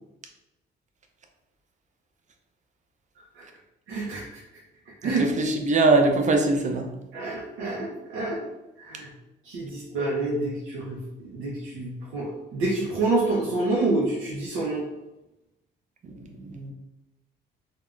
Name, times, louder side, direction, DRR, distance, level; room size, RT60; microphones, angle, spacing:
voice 1, 3.9-4.2 5.0-5.2 7.1-8.4 8.8-9.1 9.5-14.8, right 2 dB, 90° right, -4 dB, 0.6 m, -28 dB
voice 2, 5.0-6.9 16.2-16.7, right 3 dB, 40° right, 4 dB, 0.5 m, -22 dB
3.4 x 2.2 x 2.4 m, 0.96 s
cardioid pair, 90°, 20 cm